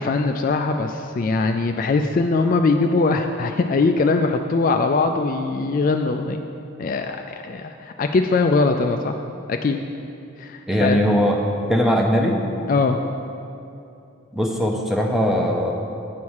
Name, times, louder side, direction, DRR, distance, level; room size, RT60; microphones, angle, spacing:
voice 1, 0.0-6.4 6.8-9.2 9.5-9.8 10.4-11.0 12.7-13.0, left 3 dB, 40° left, 5 dB, 0.3 m, -21 dB
voice 2, 10.7-12.4 14.3-15.7, equal, ahead, 1 dB, 0.6 m, -20 dB
9.3 x 4.7 x 7.2 m, 2.7 s
head